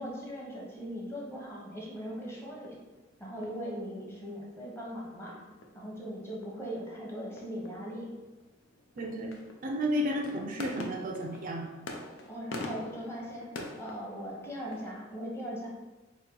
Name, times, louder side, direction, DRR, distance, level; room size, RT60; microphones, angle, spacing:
voice 1, 0.0-2.8 3.2-5.4 5.7-8.1 12.3-13.5 13.8-15.7, equal, 15° left, -4 dB, 0.8 m, -39 dB
sound 1, 2.0-14.9, left 2 dB, 90° left, 0.5 m, -47 dB
voice 2, 9.0-9.4 9.6-11.7, equal, 45° right, 2 dB, 0.4 m, -32 dB
3.6 x 2.1 x 4.3 m, 1.2 s
head